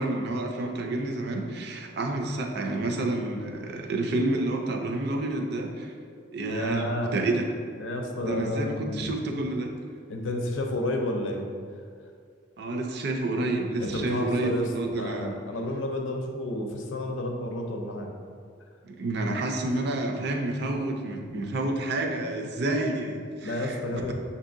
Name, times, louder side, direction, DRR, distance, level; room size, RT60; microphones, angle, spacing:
voice 1, 0.0-5.9 6.3-7.4 8.2-9.7 12.6-15.4 18.8-24.1, right 2 dB, 55° right, 2 dB, 0.5 m, -29 dB
voice 2, 6.5-7.2 7.8-9.2 10.1-11.4 13.8-18.1 23.4-24.1, left 1 dB, 80° left, 3 dB, 0.6 m, -31 dB
6.6 x 2.7 x 2.6 m, 2.3 s
head